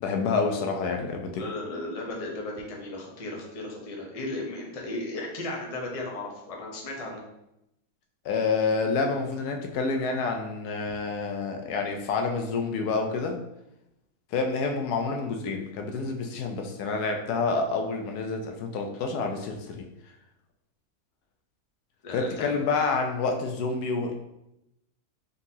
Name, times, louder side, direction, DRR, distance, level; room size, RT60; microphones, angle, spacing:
voice 1, 0.0-1.4 8.2-13.4 14.3-19.9 22.1-24.1, left 4 dB, 85° left, 3 dB, 1.1 m, -28 dB
voice 2, 1.4-7.2 22.0-22.6, left 2 dB, 35° left, -1 dB, 0.6 m, -35 dB
4.1 x 3.7 x 2.7 m, 0.87 s
omnidirectional pair, 1.6 m